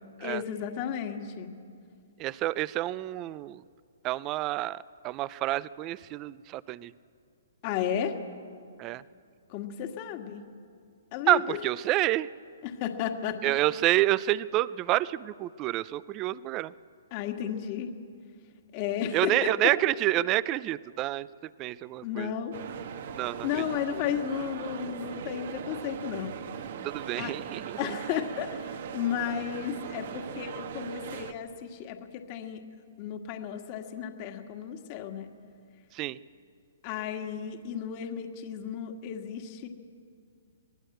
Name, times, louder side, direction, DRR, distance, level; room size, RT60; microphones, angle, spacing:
voice 1, 0.2-1.6 7.6-8.2 9.5-10.4 11.1-11.6 12.6-13.4 17.1-17.9 18.7-19.3 19.6-19.7 22.0-22.5 23.4-26.4 27.2-27.3 27.8-32.6 33.0-35.3 36.8-39.7, left 9 dB, 35° left, 5 dB, 1.8 m, -33 dB
voice 2, 2.2-3.6 4.0-6.9 8.8-9.0 11.3-12.3 13.4-16.7 19.1-21.3 21.6-22.3 23.1-23.6 26.8-27.8 35.9-36.2, right 16 dB, 25° right, 19 dB, 0.5 m, -28 dB
sound 1, 22.5-31.3, right 8 dB, 55° right, 1.4 m, -39 dB
24.5 x 19.0 x 7.9 m, 2.3 s
hypercardioid pair, 150°, 0 cm